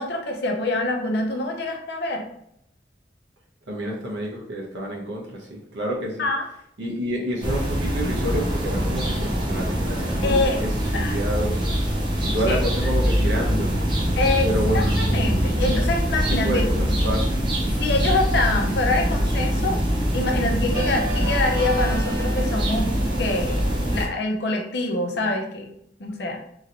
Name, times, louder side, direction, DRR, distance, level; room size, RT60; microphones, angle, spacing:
voice 1, 0.0-2.2 6.2-6.4 10.2-10.6 10.9-11.2 12.5-12.9 14.1-14.5 14.7-16.6 17.8-19.8 20.1-22.9 23.2-25.7 26.0-26.4, left 2 dB, 70° left, 2 dB, 0.7 m, -25 dB
voice 2, 3.7-6.2 6.8-11.6 12.2-13.8 14.4-15.0 16.3-17.4, equal, 80° right, -2 dB, 1.0 m, -29 dB
sound 1, 7.4-24.1, equal, 25° right, 0.7 m, -23 dB
3.0 x 2.9 x 2.6 m, 0.74 s
head